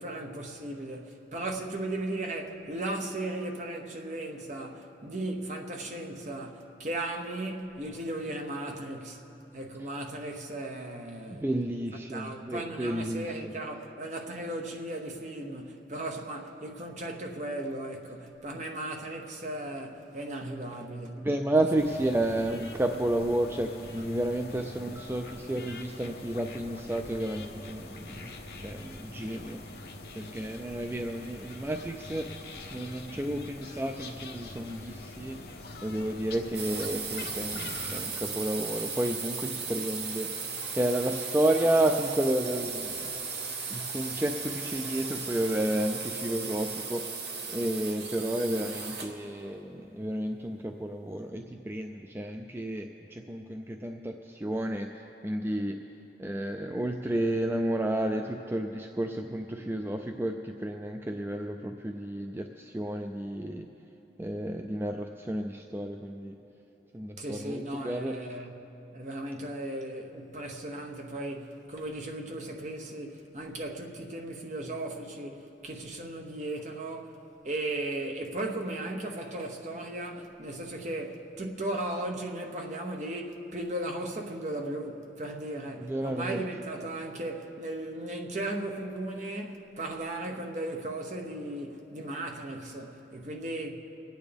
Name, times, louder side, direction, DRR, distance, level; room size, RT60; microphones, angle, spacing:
voice 1, 0.0-9.2 9.5-11.5 12.1-21.3 67.2-68.6 68.9-77.2 77.4-93.7, right 1 dB, 40° right, 0.9 m, -36 dB
voice 2, 11.3-13.2 21.2-28.3 28.6-29.6 30.2-32.3 32.7-35.4 35.8-40.3 40.7-43.0 43.7-47.0 47.5-55.8 56.2-63.7 64.2-66.3 66.9-68.1 85.8-86.4, right 1 dB, 15° right, 0.3 m, -31 dB
sound 1, 21.8-38.1, left 2 dB, 55° left, 1.0 m, -44 dB
sound 2, 36.5-49.2, right 5 dB, 70° right, 1.1 m, -36 dB
27.0 x 9.2 x 3.4 m
head